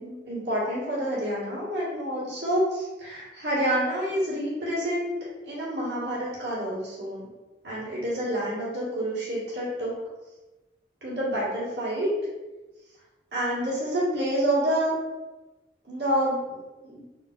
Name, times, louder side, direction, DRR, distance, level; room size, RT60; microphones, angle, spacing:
voice 1, 0.0-5.2 5.4-7.2 7.6-9.9 11.0-12.1 13.3-14.9 15.8-16.4 16.8-17.0, right 1 dB, 65° right, -8 dB, 1.5 m, -28 dB
3.6 x 2.7 x 2.4 m, 1.1 s
head